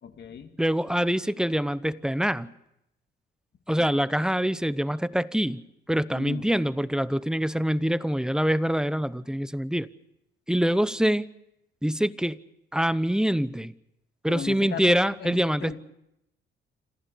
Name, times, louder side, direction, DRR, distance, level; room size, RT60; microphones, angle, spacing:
voice 1, 0.0-0.5 6.1-6.5 14.3-15.8, left 7 dB, 60° left, 7 dB, 2.5 m, -37 dB
voice 2, 0.6-2.5 3.7-5.6 5.9-9.9 10.5-11.2 11.8-12.4 12.7-13.7 14.2-15.8, equal, 5° right, 15 dB, 0.8 m, -25 dB
27.0 x 15.0 x 8.4 m, 0.83 s
cardioid pair, 90°, 20 cm